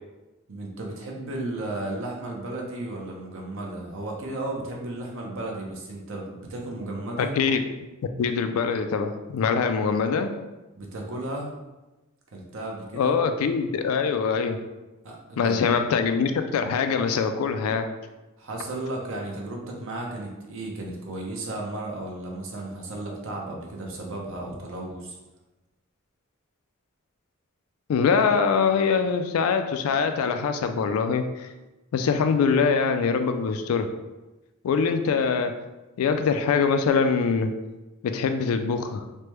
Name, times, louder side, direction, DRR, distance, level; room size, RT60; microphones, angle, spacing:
voice 1, 0.5-7.3 10.7-11.5 12.3-13.2 15.0-15.7 18.4-25.2, right 2 dB, 65° right, -1 dB, 0.6 m, -34 dB
voice 2, 7.2-7.6 8.2-10.4 12.9-14.6 15.4-17.9 27.9-31.5 31.9-33.9 34.6-35.6 36.0-37.6 38.0-39.0, left 5 dB, 85° left, 8 dB, 0.3 m, -23 dB
3.2 x 2.1 x 3.0 m, 1.1 s
head